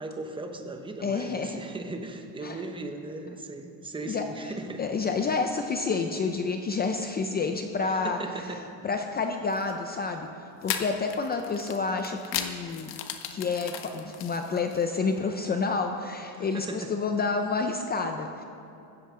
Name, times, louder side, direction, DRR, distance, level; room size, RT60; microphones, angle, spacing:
voice 1, 0.0-4.8 7.8-8.6 16.3-16.9, right 2 dB, 10° right, 4 dB, 0.8 m, -38 dB
voice 2, 1.0-1.6 2.4-2.6 4.1-4.5 4.8-10.3 10.6-12.9 13.3-18.4, left 4 dB, 25° left, 5 dB, 0.5 m, -29 dB
sound 1, 9.5-9.7 10.6-15.0, left 11 dB, 75° left, 1.3 m, -36 dB
15.5 x 14.0 x 3.7 m, 2.7 s
cardioid pair, 160°, 43 cm